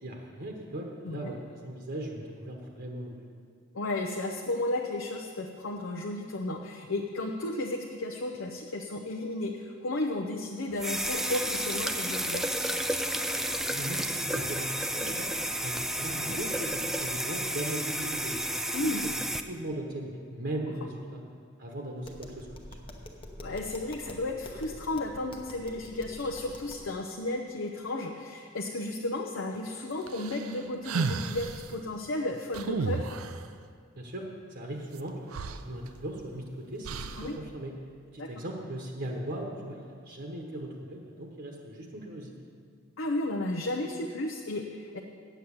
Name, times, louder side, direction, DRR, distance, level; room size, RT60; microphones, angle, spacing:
voice 1, 0.0-3.3 13.3-15.3 15.6-18.5 18.8-19.1 19.5-21.2 21.6-22.7 34.0-37.7 38.1-42.3, right 1 dB, 50° right, 0 dB, 1.1 m, -38 dB
voice 2, 3.7-12.6 16.1-16.4 18.7-19.1 23.4-33.1 37.2-37.4 38.2-38.3 43.0-45.0, left 2 dB, 70° left, 2 dB, 0.7 m, -33 dB
sound 1, 10.8-19.4, right 1 dB, ahead, 0.3 m, -31 dB
Tap, 22.0-26.9, left 1 dB, 25° left, 0.9 m, -46 dB
sound 2, 30.1-31.7 32.5-33.5 35.0-35.1 35.3-36.3 36.8-37.4, right 4 dB, 85° right, 0.5 m, -33 dB
9.0 x 8.2 x 7.2 m, 2.1 s
head